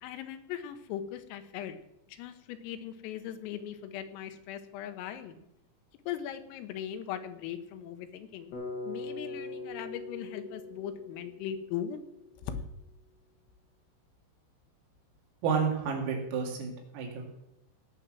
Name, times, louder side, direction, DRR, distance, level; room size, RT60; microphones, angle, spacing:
voice 1, 0.0-1.8 2.1-5.3 6.1-8.5 8.8-12.0 12.4-12.6, left 10 dB, 85° left, 9 dB, 3.6 m, -39 dB
Bass guitar, 8.5-12.6, left 3 dB, 60° left, 4.5 m, -42 dB
voice 2, 15.4-17.2, right 6 dB, 85° right, 0 dB, 4.9 m, -30 dB
17.5 x 5.9 x 7.6 m, 0.87 s
omnidirectional pair, 5.9 m